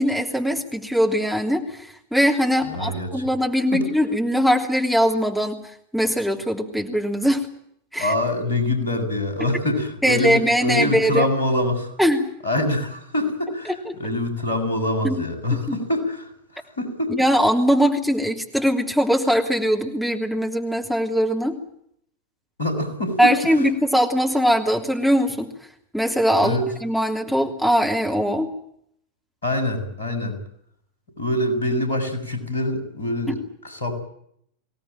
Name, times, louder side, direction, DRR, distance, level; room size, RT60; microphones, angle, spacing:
voice 1, 0.0-5.6 5.9-7.4 7.9-8.1 10.0-11.3 12.0-12.3 13.7-13.9 15.0-15.1 17.1-21.6 23.2-25.5 25.9-28.5 33.3-33.4, equal, ahead, 2 dB, 3.0 m, -21 dB
voice 2, 2.6-3.2 3.7-3.9 8.0-11.9 12.4-17.4 22.6-23.2 26.4-26.6 29.4-30.4 31.2-33.9, left 1 dB, 70° left, 7 dB, 7.2 m, -25 dB
24.5 x 17.5 x 9.0 m, 0.69 s
figure-of-eight pair, 90°, 0 cm